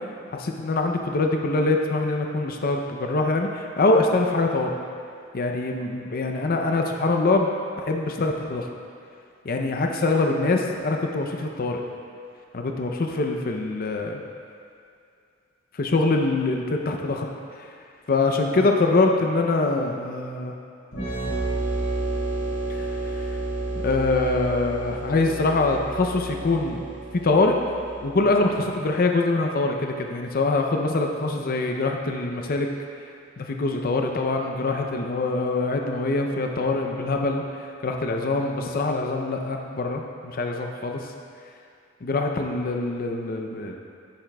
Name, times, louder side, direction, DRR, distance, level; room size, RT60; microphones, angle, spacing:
voice 1, 0.3-4.7 5.3-7.5 7.8-8.7 9.4-11.8 12.5-14.2 15.7-17.3 17.6-17.7 18.1-20.5 22.7-23.2 23.8-26.8 27.1-27.5 28.0-32.7 33.4-41.1 42.0-43.8, left 3 dB, 45° left, 3 dB, 0.5 m, -24 dB
sound 1, 20.9-28.4, right 2 dB, 75° left, 1.8 m, -31 dB
10.5 x 8.8 x 2.3 m, 2.4 s
head